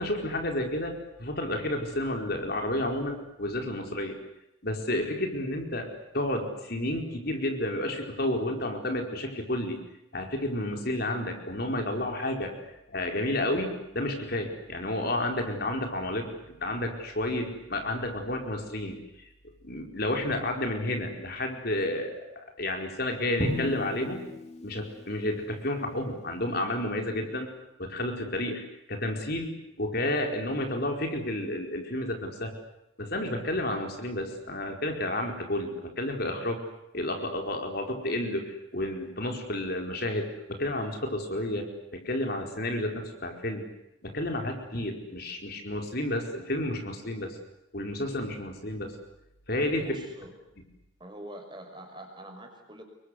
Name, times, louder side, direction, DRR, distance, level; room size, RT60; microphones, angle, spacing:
voice 1, 0.0-4.2 4.6-9.8 10.1-12.5 12.9-19.3 19.6-24.3 24.6-27.5 27.8-32.5 33.0-36.6 36.9-43.6 44.0-47.4 47.7-48.9 49.5-50.0, left 1 dB, 50° left, 3 dB, 4.8 m, -31 dB
Drum, 23.4-25.4, left 1 dB, 30° left, 3.2 m, -35 dB
voice 2, 49.8-50.3 51.0-52.8, right 1 dB, 25° right, 4 dB, 6.1 m, -44 dB
28.5 x 23.5 x 8.3 m, 0.86 s
head